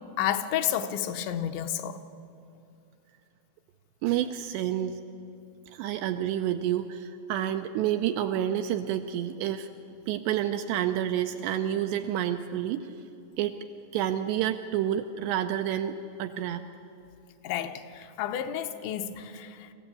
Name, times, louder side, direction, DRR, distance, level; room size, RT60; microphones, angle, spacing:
voice 1, 0.2-2.0 17.4-19.7, left 10 dB, 80° left, 7 dB, 3.0 m, -31 dB
voice 2, 4.0-5.0 5.7-9.7 10.1-12.9 13.4-13.6 13.9-16.6, right 11 dB, 80° right, 7 dB, 2.5 m, -29 dB
24.5 x 15.0 x 8.4 m, 2.7 s
omnidirectional pair, 5.4 m